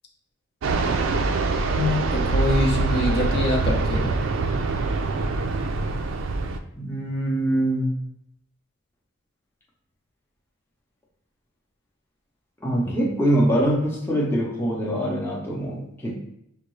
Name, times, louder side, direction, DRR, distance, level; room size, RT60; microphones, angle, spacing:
Fixed-wing aircraft airplane, 0.6-6.6, right 3 dB, 70° right, 0.4 m, -24 dB
voice 1, 1.7-4.1, left 2 dB, 50° left, 1 dB, 0.6 m, -24 dB
voice 2, 6.7-7.9 12.6-16.2, right 1 dB, 10° left, -4 dB, 0.6 m, -23 dB
6.3 x 2.3 x 3.1 m, 0.75 s
head